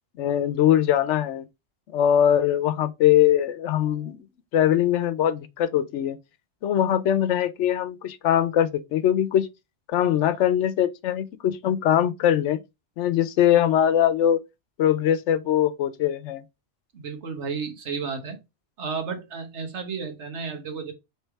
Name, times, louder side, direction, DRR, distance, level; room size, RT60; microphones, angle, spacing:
voice 1, 0.2-1.5 1.9-4.2 4.5-6.2 6.6-9.5 9.9-12.6 13.0-14.4 14.8-16.4, left 10 dB, 90° left, 0.9 m, -22 dB
voice 2, 16.9-18.4 18.8-20.9, right 5 dB, 75° right, 1.3 m, -32 dB
3.3 x 3.3 x 4.4 m
omnidirectional pair, 1.2 m